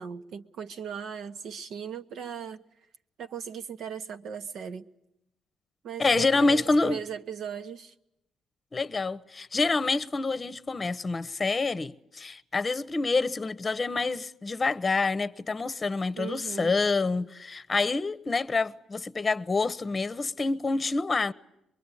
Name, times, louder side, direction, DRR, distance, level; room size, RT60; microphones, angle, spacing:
voice 1, 0.0-2.6 3.2-4.9 5.8-7.9 16.2-16.7, right 7 dB, 70° right, 1.3 m, -38 dB
voice 2, 6.0-7.0 8.7-21.3, left 3 dB, 30° left, 0.9 m, -27 dB
23.5 x 23.0 x 9.9 m
cardioid pair, 90°, 0 cm